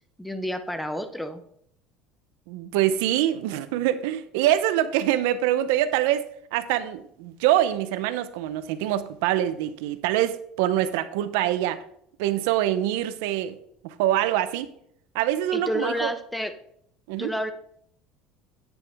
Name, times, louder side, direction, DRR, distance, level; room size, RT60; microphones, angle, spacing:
voice 1, 0.2-1.4 15.5-16.5 17.2-17.5, equal, 5° left, 9 dB, 0.5 m, -30 dB
voice 2, 2.5-6.2 6.5-11.8 12.2-13.6 13.8-14.7 15.1-16.1 17.1-17.3, right 12 dB, 80° right, 13 dB, 0.6 m, -24 dB
8.9 x 6.9 x 3.4 m, 0.71 s
cardioid pair, 170°, 0 cm